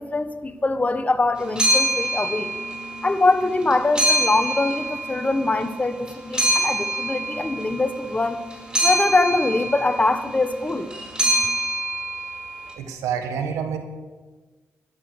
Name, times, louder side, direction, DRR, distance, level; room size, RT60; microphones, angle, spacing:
voice 1, 0.0-2.6 3.0-8.4 8.8-10.9, left 2 dB, 30° left, 10 dB, 1.4 m, -23 dB
sound 1, 1.4-3.1 3.4-5.7 6.1-12.6, right 1 dB, 15° right, 5.3 m, -25 dB
voice 2, 12.8-13.8, right 7 dB, 90° right, 5 dB, 1.7 m, -27 dB
13.5 x 10.0 x 6.6 m, 1.3 s
supercardioid pair, 50°, 5 cm